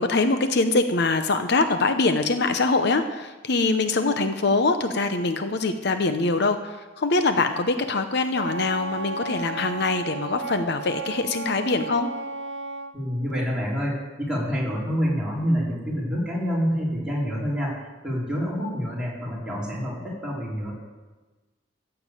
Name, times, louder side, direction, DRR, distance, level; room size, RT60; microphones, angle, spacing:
voice 1, 0.0-12.1, left 3 dB, 65° left, 8 dB, 0.8 m, -23 dB
Wind instrument woodwind instrument, 8.3-12.9, right 3 dB, 70° right, 0.8 m, -34 dB
voice 2, 12.9-17.8 18.0-20.7, equal, 5° right, -6 dB, 4.2 m, -27 dB
14.5 x 6.9 x 8.4 m, 1.2 s
head